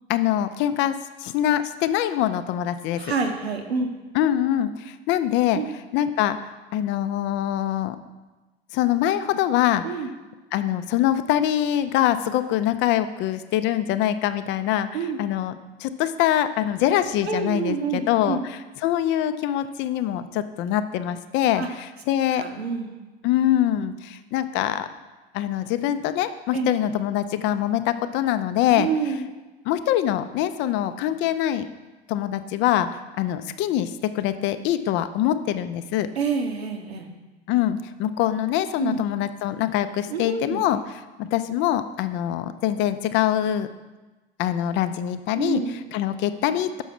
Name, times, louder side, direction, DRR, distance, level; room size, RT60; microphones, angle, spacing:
voice 1, 0.1-3.1 4.1-5.6 5.9-6.4 6.7-8.0 8.7-9.8 10.5-14.9 15.2-15.5 15.8-18.4 18.8-21.6 22.1-22.4 23.2-24.9 25.3-28.9 29.7-31.7 32.1-32.9 33.2-36.1 37.5-40.8 41.2-43.7 44.4-45.6 45.9-46.8, left 12 dB, 35° left, 12 dB, 0.5 m, -24 dB
voice 2, 3.0-3.9 5.5-5.7 9.8-10.1 14.9-15.2 17.2-18.4 21.6-21.7 22.4-23.0 26.5-26.7 28.8-29.2 36.2-37.1 38.8-39.0 40.1-40.6 45.3-45.8, right 5 dB, 75° right, 5 dB, 1.0 m, -27 dB
6.2 x 5.8 x 5.8 m, 1.2 s
figure-of-eight pair, 80°, 32 cm